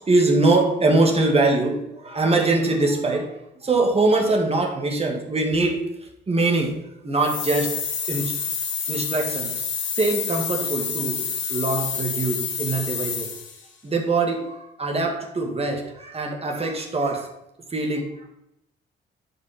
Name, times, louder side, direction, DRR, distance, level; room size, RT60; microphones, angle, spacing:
voice 1, 0.0-5.9 6.3-7.8 8.1-8.4 8.9-9.6 9.9-13.3 13.8-17.3 17.7-18.3, right 2 dB, 30° right, 2 dB, 2.4 m, -23 dB
sound 1, 7.2-13.6, left 6 dB, 70° left, 2.2 m, -28 dB
10.5 x 5.5 x 6.1 m, 0.84 s
cardioid pair, 90°, 20 cm